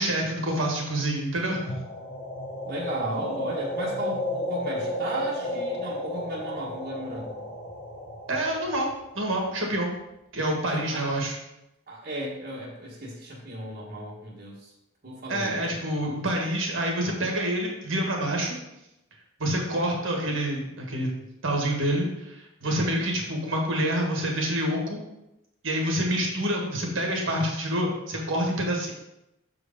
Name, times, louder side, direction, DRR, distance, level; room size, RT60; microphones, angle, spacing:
voice 1, 0.0-1.8 8.3-8.9 9.1-9.9 10.3-11.3 15.3-18.6 19.4-21.1 21.4-25.0 25.6-28.9, right 1 dB, 60° right, 0 dB, 1.6 m, -27 dB
sound 1, 1.5-9.5, left 1 dB, 55° left, 2.4 m, -33 dB
voice 2, 2.6-7.4 10.5-11.1 11.9-14.7 15.0-15.8 22.6-23.0, right 1 dB, 40° right, -6 dB, 1.4 m, -35 dB
6.5 x 4.8 x 5.1 m, 0.89 s
head